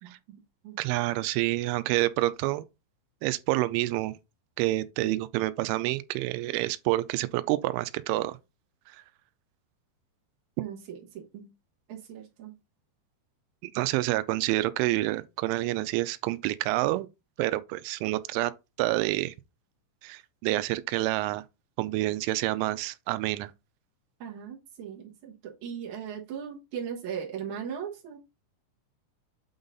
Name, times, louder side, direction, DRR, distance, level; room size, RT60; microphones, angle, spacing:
voice 1, 0.0-0.8 5.0-5.3 10.6-11.5 11.9-12.5 24.2-28.2, right 8 dB, 70° right, 1.8 m, -38 dB
voice 2, 0.8-2.7 3.2-4.1 4.6-8.4 13.6-17.1 17.4-18.5 18.8-19.3 20.0-21.4 21.8-23.5, right 17 dB, 90° right, 3.0 m, -28 dB
8.8 x 3.9 x 3.9 m
omnidirectional pair, 5.4 m